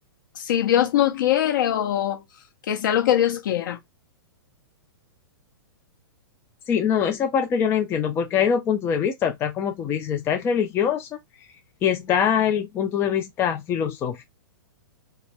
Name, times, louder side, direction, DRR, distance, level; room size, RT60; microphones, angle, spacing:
voice 1, 0.4-2.2 2.7-3.8, left 11 dB, 55° left, 0.9 m, -22 dB
voice 2, 6.7-11.1 11.8-14.2, left 8 dB, 20° left, 0.3 m, -23 dB
2.2 x 2.0 x 3.4 m
figure-of-eight pair, 110°, 12 cm